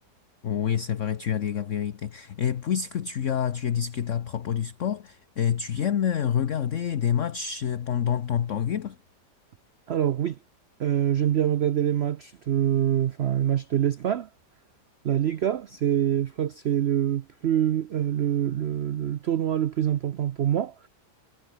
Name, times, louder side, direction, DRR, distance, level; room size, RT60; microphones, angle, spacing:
voice 1, 0.4-9.0, left 8 dB, 50° left, 1.1 m, -27 dB
voice 2, 9.9-10.4 10.8-14.3 15.0-20.9, right 10 dB, 85° right, 0.5 m, -25 dB
omnidirectional pair, 1.9 m